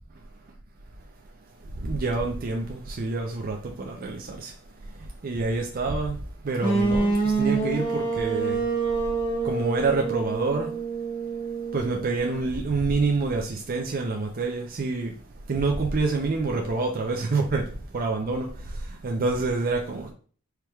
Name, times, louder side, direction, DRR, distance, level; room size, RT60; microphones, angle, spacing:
voice 1, 1.8-4.5 5.2-6.2 6.4-8.6 9.4-10.8 11.7-15.1 15.5-20.1, right 3 dB, 45° right, 0.5 m, -27 dB
sound 1, 6.6-12.5, right 3 dB, 25° left, 1.1 m, -27 dB
4.5 x 3.4 x 2.3 m
head